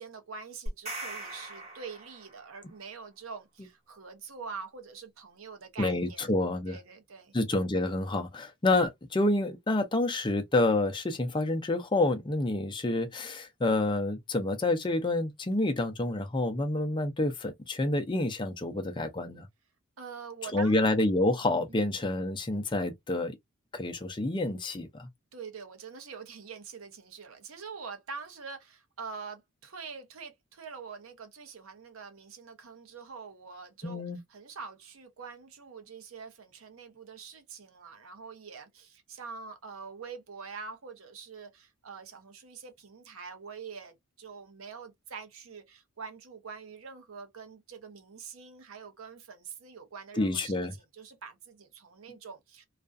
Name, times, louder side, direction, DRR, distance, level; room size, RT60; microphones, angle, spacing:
voice 1, 0.0-6.3 6.7-7.3 20.0-20.9 21.7-21.8 25.3-34.0 34.3-52.6, right 5 dB, 80° right, 0.7 m, -45 dB
sound 1, 0.7-2.6, right 2 dB, 30° right, 0.9 m, -40 dB
voice 2, 5.8-6.8 7.3-19.5 20.5-23.4 23.7-25.1 33.8-34.2 50.2-50.7, left 2 dB, 20° left, 0.4 m, -28 dB
2.4 x 2.2 x 2.4 m
head